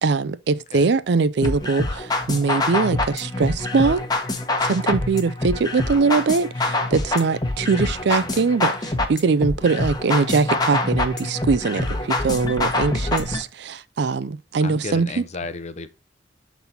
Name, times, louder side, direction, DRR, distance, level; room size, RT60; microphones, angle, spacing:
voice 1, 0.0-4.0 4.6-15.2, right 4 dB, 65° right, 0.5 m, -22 dB
sound 1, 1.4-13.4, left 2 dB, 20° left, 1.0 m, -25 dB
voice 2, 7.7-8.4 14.6-15.9, left 3 dB, 40° left, 0.7 m, -34 dB
7.0 x 4.1 x 4.2 m
head